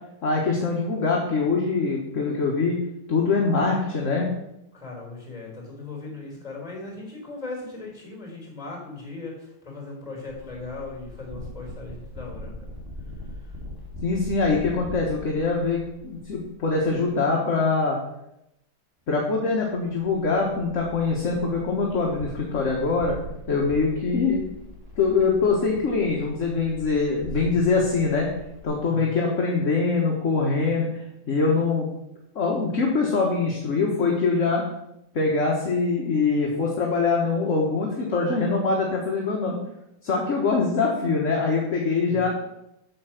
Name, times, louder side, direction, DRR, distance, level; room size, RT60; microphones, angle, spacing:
voice 1, 0.2-2.8 3.1-4.3 14.0-18.0 19.1-23.2 23.5-24.4 25.0-28.3 28.6-31.9 32.3-34.6 35.1-39.6 40.0-42.3, left 4 dB, 40° left, -1 dB, 1.5 m, -23 dB
voice 2, 4.7-12.7 13.2-13.5 27.4-27.9 28.9-29.2 42.1-42.3, left 3 dB, 15° left, -2 dB, 3.8 m, -38 dB
sound 1, 10.3-17.1 19.4-28.7, left 1 dB, 10° right, 2.3 m, -41 dB
8.6 x 7.3 x 5.9 m, 0.84 s
omnidirectional pair, 2.4 m